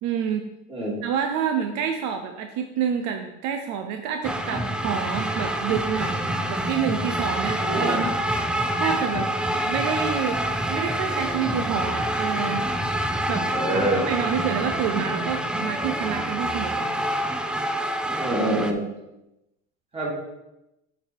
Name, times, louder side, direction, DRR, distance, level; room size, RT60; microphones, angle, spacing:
voice 1, 0.0-0.5 1.0-6.2 6.5-8.1 8.8-9.3 9.6-10.4 10.7-12.6 13.3-17.0, right 8 dB, 65° right, 5 dB, 0.7 m, -28 dB
sound 1, 4.2-18.7, right 1 dB, 5° right, 0.3 m, -26 dB
voice 2, 7.6-8.0 13.5-14.0 18.2-18.8 19.9-20.1, right 1 dB, 20° right, -5 dB, 2.7 m, -25 dB
7.5 x 4.1 x 4.5 m, 0.93 s
cardioid pair, 130°, 31 cm